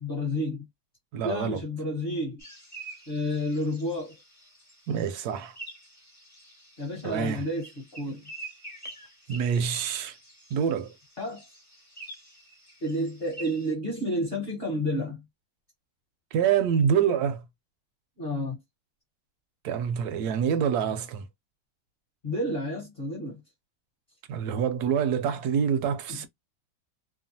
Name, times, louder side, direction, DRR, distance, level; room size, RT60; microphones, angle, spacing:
voice 1, 0.0-0.7 1.2-2.4 3.1-4.1 6.8-8.2 11.2-11.4 12.8-15.2 18.2-18.6 22.2-23.4 26.1-26.2, left 1 dB, 40° left, 1.0 m, -30 dB
voice 2, 1.1-1.6 4.9-5.5 7.0-7.5 9.3-10.2 10.5-10.9 16.3-17.4 19.6-21.3 24.3-26.3, right 7 dB, 70° right, 1.0 m, -26 dB
sound 1, 2.4-13.7, right 2 dB, 15° left, 0.8 m, -47 dB
3.0 x 2.2 x 2.7 m
omnidirectional pair, 1.9 m